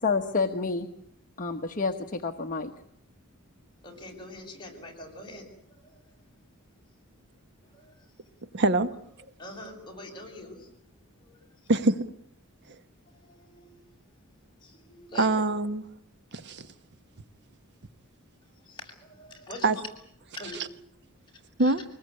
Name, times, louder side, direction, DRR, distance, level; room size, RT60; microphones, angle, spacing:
voice 1, 0.0-0.9 1.4-2.7, left 4 dB, 40° left, 1.2 m, -28 dB
voice 2, 3.8-5.4 5.9-6.0 7.7-7.8 9.4-10.7 11.2-11.4 13.2-13.8 14.6-15.4 18.7-19.7 20.4-20.6 21.6-21.7, left 1 dB, 20° left, 7.4 m, -43 dB
voice 3, 8.5-8.9 11.7-12.1 15.2-15.8 16.3-16.7 19.6-19.8 21.6-21.8, right 2 dB, 55° right, 1.1 m, -24 dB
24.5 x 20.5 x 9.7 m
head